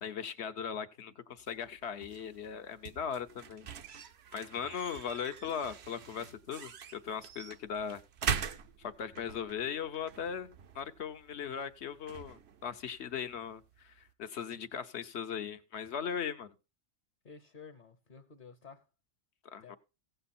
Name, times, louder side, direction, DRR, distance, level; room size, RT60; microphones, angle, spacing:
voice 1, 0.0-3.7 4.3-8.0 8.8-16.5 19.4-19.8, left 7 dB, 65° left, 1.2 m, -39 dB
sound 1, 1.4-14.1, right 7 dB, 65° right, 1.0 m, -43 dB
voice 2, 17.2-18.8 19.6-19.8, left 5 dB, 45° left, 1.0 m, -52 dB
16.0 x 7.9 x 4.3 m
omnidirectional pair, 1.2 m